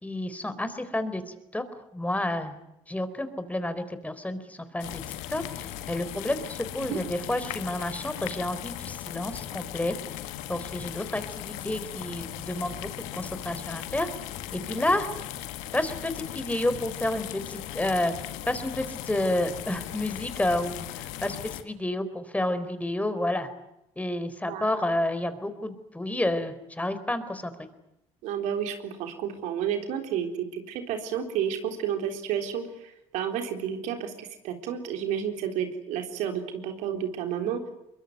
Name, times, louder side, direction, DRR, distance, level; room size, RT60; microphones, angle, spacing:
voice 1, 0.0-1.2 1.5-1.6 1.9-2.6 2.9-5.0 5.3-10.0 10.5-12.9 13.2-14.1 14.5-15.1 15.7-18.1 18.5-21.4 21.6-23.5 24.0-27.5, left 1 dB, 10° left, 11 dB, 4.1 m, -30 dB
sound 1, 4.8-21.6, left 13 dB, 90° left, 1.8 m, -38 dB
voice 2, 28.2-37.6, right 8 dB, 85° right, 5 dB, 3.8 m, -31 dB
23.5 x 22.0 x 9.5 m, 0.85 s
supercardioid pair, 70°, 12 cm